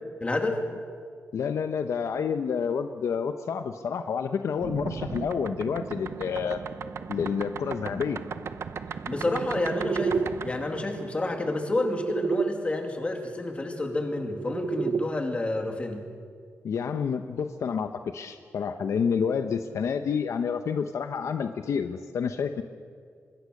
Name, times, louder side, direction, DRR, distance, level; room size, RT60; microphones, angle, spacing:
voice 1, 0.2-0.6 9.1-16.0, left 2 dB, 25° left, 4 dB, 2.5 m, -29 dB
voice 2, 1.3-6.6 7.1-8.2 16.6-22.6, left 6 dB, 70° left, 8 dB, 0.9 m, -29 dB
sound 1, 4.6-12.5 13.8-15.1, right 6 dB, 55° right, 0.8 m, -33 dB
24.5 x 21.0 x 6.6 m, 2.1 s
wide cardioid pair, 160°, 5 cm